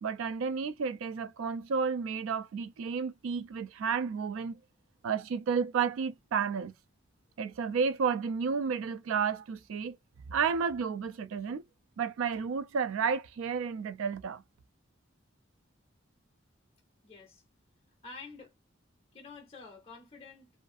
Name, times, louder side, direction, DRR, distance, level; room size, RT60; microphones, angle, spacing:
voice 1, 0.0-4.6 5.0-6.7 7.4-10.0 10.3-11.6 12.0-14.4, right 6 dB, 85° right, 0.3 m, -31 dB
voice 2, 17.0-17.4 18.0-18.5 19.1-20.5, left 4 dB, 30° left, 0.5 m, -48 dB
2.5 x 2.3 x 2.4 m
head